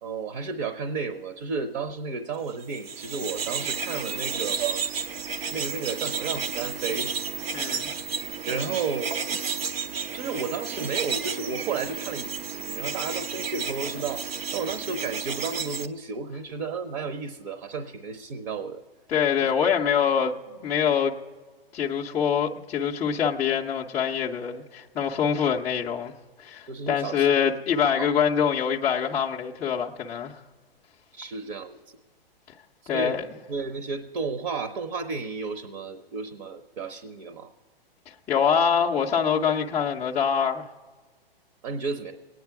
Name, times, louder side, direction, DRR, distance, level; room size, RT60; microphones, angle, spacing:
voice 1, 0.0-4.8 5.5-7.1 8.5-9.1 10.1-18.8 19.4-19.5 26.7-27.3 27.8-28.1 31.1-31.8 32.9-33.2 33.5-37.5 41.6-42.1, right 5 dB, 50° right, 9 dB, 0.9 m, -32 dB
sound 1, 2.6-15.9, right 6 dB, 80° right, 0.9 m, -32 dB
voice 2, 7.5-7.9 19.1-21.1 21.7-30.4 32.9-33.3 38.1-40.7, left 7 dB, 10° left, -2 dB, 0.3 m, -25 dB
21.5 x 9.5 x 4.6 m, 1.4 s
hypercardioid pair, 135°, 29 cm